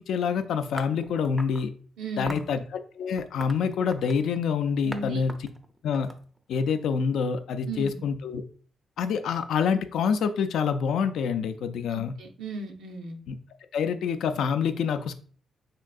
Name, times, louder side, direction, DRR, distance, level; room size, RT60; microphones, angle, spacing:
voice 1, 0.0-1.7 2.2-2.6 3.0-5.3 5.8-6.1 6.5-8.4 9.0-12.1 13.3-13.4 13.7-15.1, left 6 dB, 80° left, 9 dB, 0.3 m, -26 dB
sound 1, 0.8-1.7 2.3-2.5 3.2-4.3 4.9-5.0 5.3-6.7, right 1 dB, 10° right, 0.4 m, -40 dB
voice 2, 2.0-2.5 4.8-5.2 7.7-8.0 11.9-13.2, right 3 dB, 90° right, 2 dB, 0.5 m, -36 dB
3.6 x 2.5 x 2.3 m, 0.44 s
cardioid pair, 85°, 0 cm